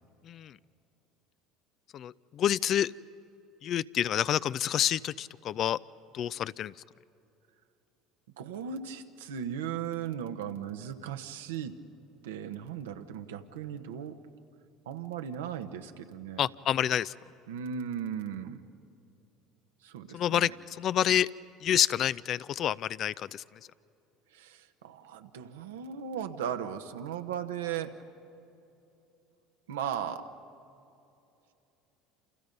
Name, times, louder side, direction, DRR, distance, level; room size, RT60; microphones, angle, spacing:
voice 1, 0.2-0.6 1.9-2.9 3.6-5.8 6.1-6.7 16.4-17.1 20.1-21.3 21.6-23.4, left 10 dB, 50° left, 18 dB, 0.4 m, -28 dB
voice 2, 8.4-11.8 12.2-14.2 14.9-16.4 17.5-18.6 19.8-20.5 24.3-28.0 29.7-30.3, right 8 dB, 85° right, 7 dB, 1.2 m, -37 dB
28.5 x 28.0 x 5.4 m, 2.9 s
hypercardioid pair, 75°, 0 cm